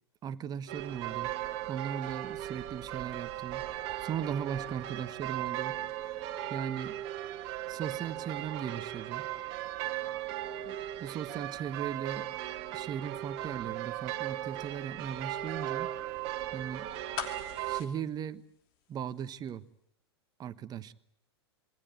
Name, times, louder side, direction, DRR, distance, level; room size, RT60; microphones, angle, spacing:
voice 1, 0.2-1.3 1.7-3.6 4.0-6.2 6.5-7.0 7.7-9.3 10.6-12.3 12.7-15.9 16.5-16.9 17.7-18.4 18.9-19.6 20.4-20.9, right 8 dB, 30° right, 12 dB, 1.3 m, -38 dB
sound 1, 0.7-17.8, right 13 dB, 45° right, 2.0 m, -37 dB
sound 2, 17.1-19.2 19.5-19.6, left 9 dB, 55° left, 2.8 m, -41 dB
26.5 x 21.5 x 8.1 m, 0.71 s
figure-of-eight pair, 95°, 14 cm